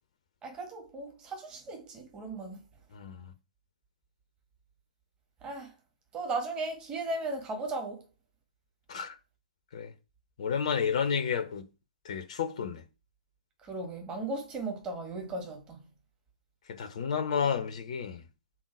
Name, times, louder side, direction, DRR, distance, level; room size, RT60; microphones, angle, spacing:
voice 1, 0.4-2.6 5.4-5.7 6.1-8.0 13.6-15.8, right 2 dB, 20° right, 1.7 m, -36 dB
voice 2, 2.9-3.3 8.9-9.1 9.7-9.9 10.4-11.7 12.0-12.8 16.7-18.2, left 7 dB, 45° left, 0.8 m, -31 dB
6.3 x 3.8 x 4.7 m
figure-of-eight pair, 120°, 5 cm